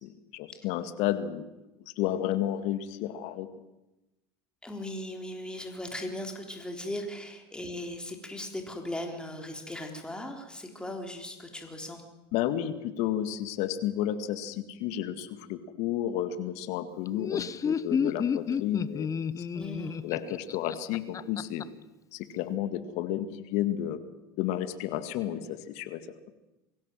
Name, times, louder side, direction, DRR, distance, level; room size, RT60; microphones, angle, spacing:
voice 1, 0.0-1.4 1.9-3.5 12.3-19.1 19.4-19.5 20.0-21.6 22.1-24.0 24.4-26.0, left 11 dB, 60° left, 11 dB, 2.0 m, -32 dB
voice 2, 4.6-12.1 19.6-20.0, left 1 dB, 5° left, 3 dB, 3.9 m, -38 dB
Laughter, 17.1-21.6, left 7 dB, 25° left, 0.8 m, -31 dB
23.0 x 16.5 x 7.7 m, 1.0 s
hypercardioid pair, 90°, 13 cm